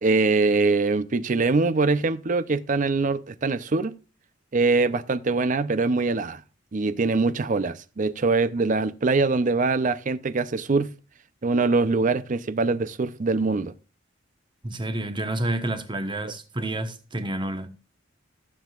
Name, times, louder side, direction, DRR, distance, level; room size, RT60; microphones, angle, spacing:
voice 1, 0.0-4.0 4.5-6.4 6.7-10.9 11.4-13.7 16.2-16.3, right 3 dB, 40° right, 0.5 m, -23 dB
voice 2, 14.6-17.7, right 1 dB, 25° right, 1.0 m, -29 dB
15.0 x 7.6 x 2.4 m
head